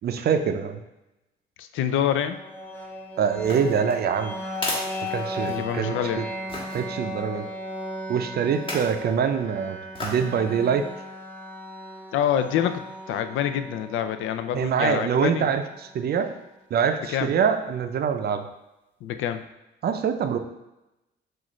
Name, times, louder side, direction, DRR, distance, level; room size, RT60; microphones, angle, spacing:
voice 1, 0.0-0.8 3.2-4.3 5.1-6.3 6.7-7.5 8.1-10.9 14.5-16.3 16.7-18.5 19.8-20.4, right 7 dB, 55° right, 8 dB, 0.5 m, -24 dB
voice 2, 1.6-2.4 5.5-6.3 12.1-12.8 13.1-15.5 17.1-17.3 19.0-19.4, left 9 dB, 80° left, 10 dB, 0.4 m, -26 dB
sound 1, 2.3-16.2, left 1 dB, 10° left, 0.7 m, -37 dB
sound 2, 3.4-5.8 6.5-6.8 8.5-9.0 9.9-10.3 10.8-10.9, left 1 dB, 25° left, 1.4 m, -34 dB
6.1 x 2.5 x 3.1 m, 0.94 s
cardioid pair, 90°, 20 cm